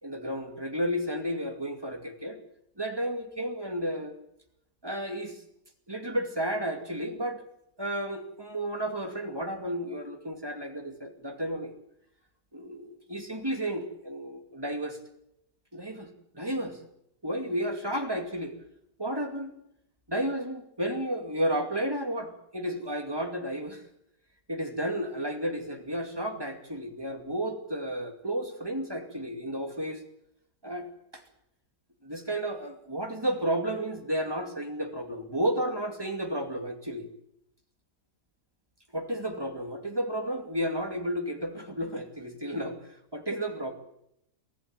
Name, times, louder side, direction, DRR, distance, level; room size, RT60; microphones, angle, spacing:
voice 1, 0.0-2.4 2.8-4.1 4.8-5.4 5.9-7.4 7.8-11.7 12.5-15.0 15.7-16.1 16.3-16.8 17.2-18.5 19.0-19.5 20.1-23.8 24.5-30.0 30.6-31.2 32.0-37.1 38.9-42.8 43.1-43.7, right 1 dB, 15° right, 4 dB, 2.4 m, -32 dB
24.0 x 15.5 x 9.0 m, 0.79 s
omnidirectional pair, 1.8 m